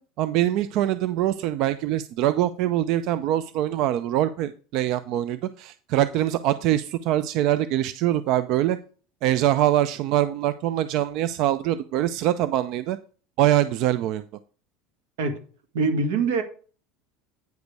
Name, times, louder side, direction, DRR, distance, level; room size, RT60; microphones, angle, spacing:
voice 1, 0.2-8.8 9.2-13.0 13.4-14.2, right 13 dB, 55° right, 0.4 m, -23 dB
voice 2, 15.7-16.4, right 4 dB, 90° right, 1.9 m, -23 dB
9.2 x 5.2 x 4.8 m
supercardioid pair, 145°, 0 cm